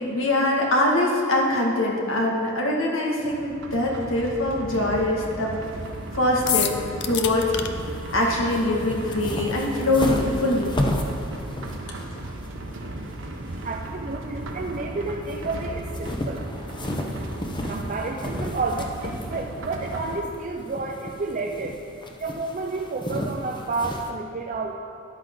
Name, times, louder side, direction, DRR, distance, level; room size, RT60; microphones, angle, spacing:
voice 1, 0.0-5.5 6.1-6.7 7.0-7.5 8.1-10.7, left 1 dB, 90° left, -2 dB, 2.0 m, -23 dB
sound 1, 3.2-20.2, right 1 dB, 70° right, 0.9 m, -36 dB
sound 2, 5.6-24.1, left 1 dB, 25° left, 0.9 m, -34 dB
sound 3, 6.5-7.7, left 10 dB, 60° left, 0.7 m, -26 dB
voice 2, 13.6-16.5 17.7-21.8 22.2-24.7, right 3 dB, 40° right, 1 dB, 0.6 m, -30 dB
13.5 x 10.5 x 3.9 m, 2.6 s
head